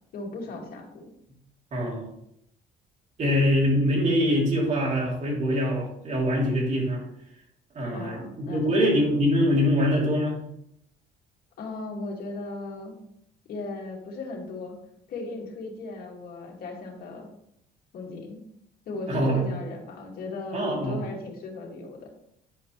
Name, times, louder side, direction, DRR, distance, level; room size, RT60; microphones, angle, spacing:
voice 1, 0.1-1.0 7.9-8.9 11.6-12.9 13.5-14.8 15.1-17.3 17.9-18.4 18.9-22.1, left 3 dB, 60° left, 0 dB, 2.3 m, -37 dB
voice 2, 1.7-2.1 3.2-7.0 7.7-10.4 19.1-19.4 20.5-21.1, equal, 45° right, -2 dB, 3.2 m, -24 dB
10.5 x 5.3 x 3.3 m, 0.75 s
cardioid pair, 110°, 17 cm